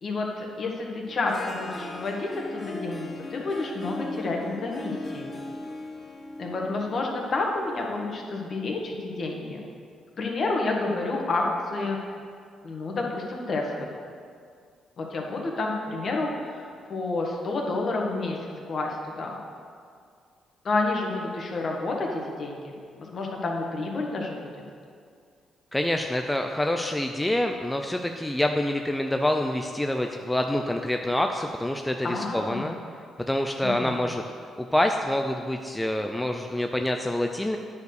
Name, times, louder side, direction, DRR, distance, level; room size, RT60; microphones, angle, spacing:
voice 1, 0.0-5.3 6.4-9.6 10.2-12.0 12.6-13.9 15.0-16.6 16.9-18.4 18.7-19.3 20.6-22.6 23.0-24.5 32.0-32.7 33.6-34.0, left 3 dB, 50° left, 0 dB, 1.6 m, -29 dB
Harp, 1.0-8.1, left 2 dB, 25° left, 0.9 m, -38 dB
voice 2, 25.7-32.8 33.3-34.2 34.6-37.6, left 1 dB, 10° left, 4 dB, 0.5 m, -26 dB
9.5 x 4.8 x 6.5 m, 2.2 s
cardioid pair, 90°, 0 cm